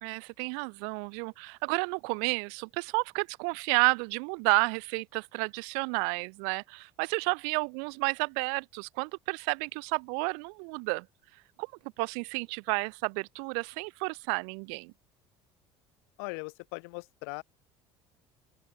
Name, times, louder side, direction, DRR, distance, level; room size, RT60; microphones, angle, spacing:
voice 1, 0.0-11.1 11.6-11.7 12.0-14.9, right 40 dB or more, 75° right, 0.5 m, -31 dB
voice 2, 16.2-17.4, left 34 dB, 75° left, 0.8 m, -39 dB
open air
hypercardioid pair, 80°, 13 cm